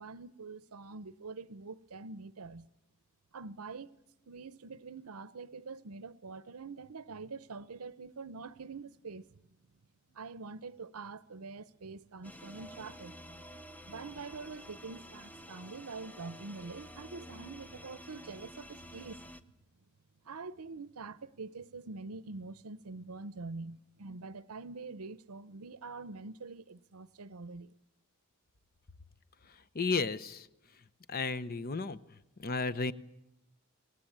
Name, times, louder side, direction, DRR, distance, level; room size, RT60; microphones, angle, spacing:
voice 1, 0.0-2.7 3.3-4.0 4.3-9.2 10.1-13.2 13.9-19.2 20.3-27.7, right 4 dB, 80° right, 0.8 m, -45 dB
sound 1, 12.2-19.4, equal, 10° left, 0.8 m, -50 dB
voice 2, 29.7-30.5 31.1-32.0 32.4-32.9, left 4 dB, 45° left, 0.8 m, -33 dB
24.0 x 18.5 x 8.7 m
head